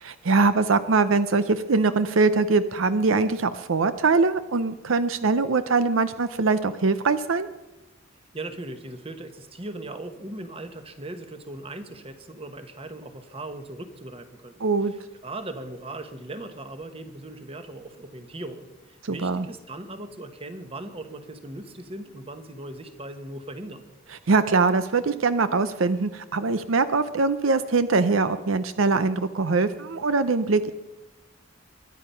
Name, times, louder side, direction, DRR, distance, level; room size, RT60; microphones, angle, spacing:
voice 1, 0.0-7.5 14.6-14.9 19.0-19.4 24.3-30.7, right 4 dB, 80° right, 12 dB, 0.6 m, -22 dB
voice 2, 8.3-23.8, right 2 dB, 30° right, 8 dB, 1.3 m, -39 dB
23.0 x 10.5 x 5.7 m, 1.0 s
head